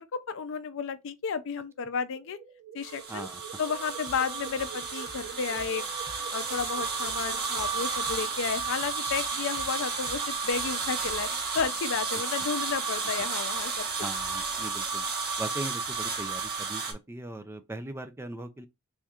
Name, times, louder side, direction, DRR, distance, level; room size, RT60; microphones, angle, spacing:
voice 1, 0.0-2.4 2.7-3.3 3.6-5.8 6.3-11.3 11.5-13.9, left 6 dB, 60° left, 0.4 m, -32 dB
sound 1, 1.7-8.4, right 9 dB, 75° right, 1.4 m, -47 dB
sound 2, 2.8-16.9, right 4 dB, 45° right, 1.2 m, -32 dB
voice 2, 3.1-3.4 14.0-15.1 15.4-18.7, right 1 dB, 10° right, 0.3 m, -39 dB
sound 3, 4.1-12.0, left 1 dB, 20° left, 0.7 m, -51 dB
4.2 x 3.5 x 2.3 m
head